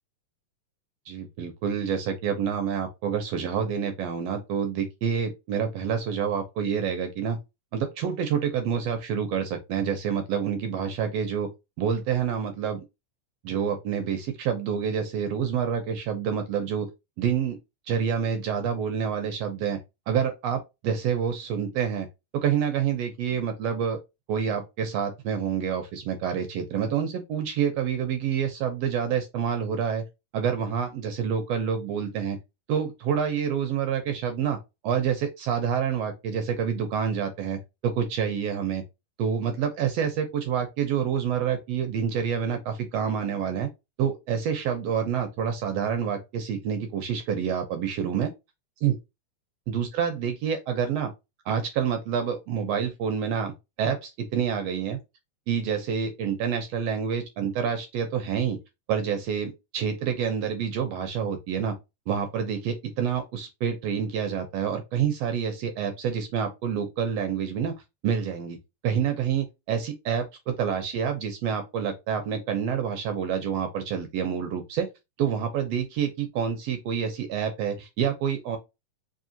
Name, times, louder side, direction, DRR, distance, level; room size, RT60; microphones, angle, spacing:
voice 1, 1.1-7.4 7.7-11.5 11.8-12.8 13.4-16.9 17.2-17.6 17.9-19.8 20.1-22.1 22.3-24.0 24.3-30.0 30.3-32.4 32.7-34.6 34.8-38.8 39.2-43.7 44.0-48.3 48.8-49.0 49.7-51.1 51.4-55.0 55.5-58.6 58.9-61.8 62.1-67.7 68.0-68.6 68.8-74.9 75.2-78.6, right 7 dB, 75° right, 1.5 m, -27 dB
4.6 x 3.2 x 2.7 m
omnidirectional pair, 3.7 m